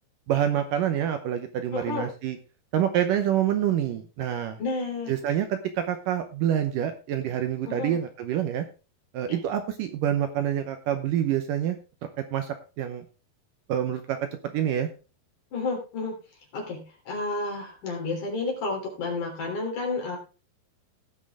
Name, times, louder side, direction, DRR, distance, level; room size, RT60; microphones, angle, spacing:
voice 1, 0.3-2.4 2.7-4.6 5.1-8.6 9.1-11.8 12.3-13.1 13.7-14.2 14.5-14.9, right 10 dB, 70° right, 7 dB, 2.2 m, -27 dB
voice 2, 1.7-2.1 4.6-5.1 7.6-8.0 9.3-9.4 15.5-16.1 16.5-20.2, left 3 dB, 55° left, 0 dB, 4.7 m, -31 dB
18.0 x 6.2 x 3.6 m, 0.34 s
omnidirectional pair, 4.4 m